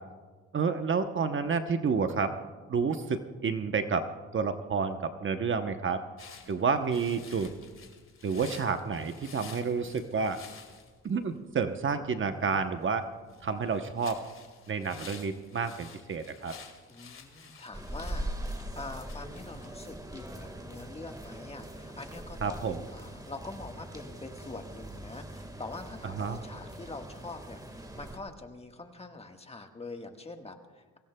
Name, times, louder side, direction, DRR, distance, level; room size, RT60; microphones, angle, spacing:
voice 1, 0.5-2.3 2.7-4.1 4.3-6.0 6.5-7.5 8.2-10.4 11.0-13.1 13.4-14.2 14.7-16.5 22.4-22.9 26.1-26.4, right 5 dB, 40° right, 8 dB, 0.9 m, -30 dB
sound 1, 6.2-20.4, left 6 dB, 45° left, 2.0 m, -52 dB
voice 2, 16.9-31.0, left 3 dB, 20° left, 4 dB, 1.4 m, -44 dB
sound 2, 17.7-28.2, right 1 dB, 10° right, 1.6 m, -41 dB
23.0 x 17.5 x 2.2 m, 1.4 s
cardioid pair, 90°, 30 cm